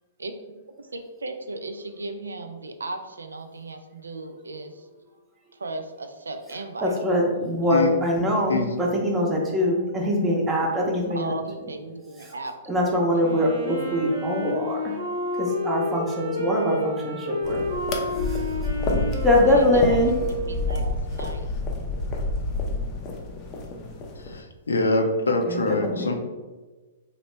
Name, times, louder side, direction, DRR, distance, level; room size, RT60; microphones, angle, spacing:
voice 1, 0.8-4.9 5.5-6.9 11.1-12.5 13.1-13.4 19.5-21.5, right 2 dB, 90° right, 6 dB, 0.3 m, -36 dB
voice 2, 6.8-11.3 12.2-12.3 12.7-14.9 15.3-17.6 18.0-18.4 18.9-20.1 25.3-26.1, left 1 dB, 15° right, -1 dB, 0.7 m, -23 dB
Wind instrument woodwind instrument, 13.2-20.9, equal, 60° right, 0.9 m, -30 dB
sound 1, 17.4-24.4, left 2 dB, 35° left, 0.5 m, -29 dB
voice 3, 24.2-26.1, left 2 dB, 85° left, 4 dB, 0.4 m, -24 dB
2.9 x 2.1 x 3.2 m, 1.3 s
hypercardioid pair, 115°, 0 cm